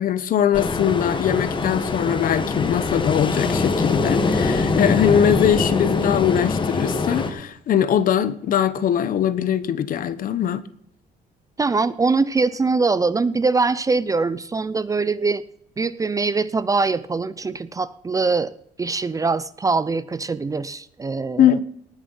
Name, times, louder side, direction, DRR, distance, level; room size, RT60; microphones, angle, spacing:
voice 1, 0.0-10.6 21.4-21.6, left 9 dB, 55° left, 15 dB, 1.0 m, -21 dB
Ocean, 0.5-7.3, left 3 dB, 30° left, 1.6 m, -23 dB
voice 2, 11.6-15.4 15.8-18.5 18.8-21.6, right 4 dB, 20° right, 16 dB, 0.5 m, -22 dB
19.0 x 6.9 x 5.7 m, 0.70 s
cardioid pair, 110°, 17 cm